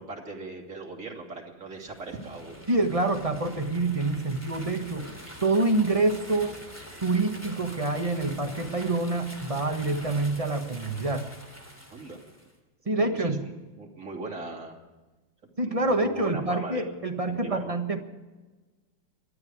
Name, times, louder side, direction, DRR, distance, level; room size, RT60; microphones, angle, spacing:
voice 1, 0.0-2.6 11.9-12.2 13.0-14.8 15.4-17.0 17.3-17.8, right 3 dB, 40° right, -1 dB, 3.1 m, -39 dB
sound 1, 1.7-12.5, equal, 5° left, 3.0 m, -45 dB
voice 2, 2.7-5.1 5.4-6.6 7.0-11.3 12.9-13.4 15.6-18.0, right 2 dB, 20° right, 5 dB, 1.1 m, -26 dB
25.0 x 11.0 x 4.8 m, 1.2 s
omnidirectional pair, 2.2 m